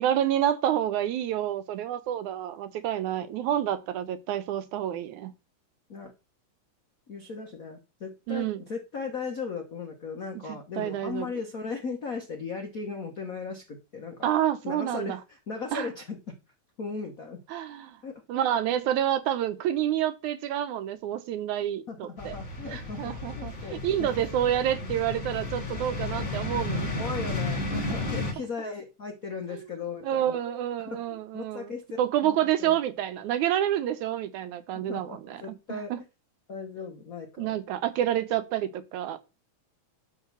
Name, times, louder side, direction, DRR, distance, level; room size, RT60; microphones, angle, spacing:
voice 1, 0.0-5.3 8.3-8.6 10.8-11.3 14.2-15.2 15.7-15.9 17.5-18.0 18.3-22.3 22.7-26.9 29.5-29.6 30.0-36.0 37.4-39.2, right 11 dB, 80° right, 2.2 m, -28 dB
voice 2, 7.1-14.3 14.6-16.3 16.8-17.4 18.0-18.2 21.9-24.3 27.0-30.4 30.9-32.8 34.7-36.0 36.5-37.6, left 5 dB, 80° left, 0.7 m, -37 dB
sound 1, 22.2-28.3, left 2 dB, 40° left, 3.2 m, -33 dB
10.5 x 3.8 x 6.8 m
omnidirectional pair, 3.5 m